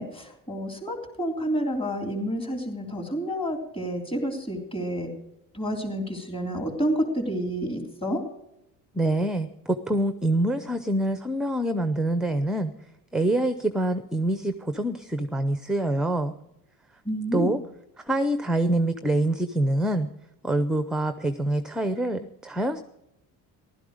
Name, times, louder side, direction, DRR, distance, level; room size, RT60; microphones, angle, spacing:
voice 1, 0.0-5.1 5.5-8.2 17.0-17.5, equal, 15° left, 2 dB, 3.4 m, -29 dB
voice 2, 8.9-12.7 13.1-16.3 17.3-17.6 18.0-20.1 20.4-22.8, right 1 dB, ahead, 10 dB, 0.6 m, -25 dB
15.5 x 12.5 x 5.0 m, 0.84 s
cardioid pair, 140°, 38 cm